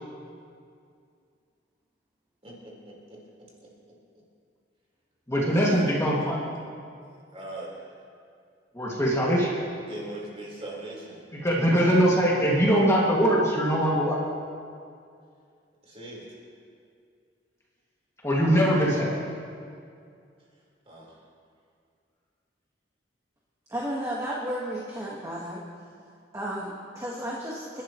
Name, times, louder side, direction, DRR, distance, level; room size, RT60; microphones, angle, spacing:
voice 1, 2.4-3.7 4.1-4.2 5.5-6.3 7.0-8.0 9.8-11.2 15.8-16.4 20.9-21.2, right 1 dB, 35° right, -4 dB, 4.2 m, -41 dB
voice 2, 5.3-6.4 8.7-9.5 11.3-14.2 18.2-19.1, equal, 15° left, -4 dB, 2.1 m, -22 dB
voice 3, 23.7-25.6 26.3-27.8, equal, 15° right, -4 dB, 1.5 m, -33 dB
29.0 x 11.5 x 3.1 m, 2.3 s
head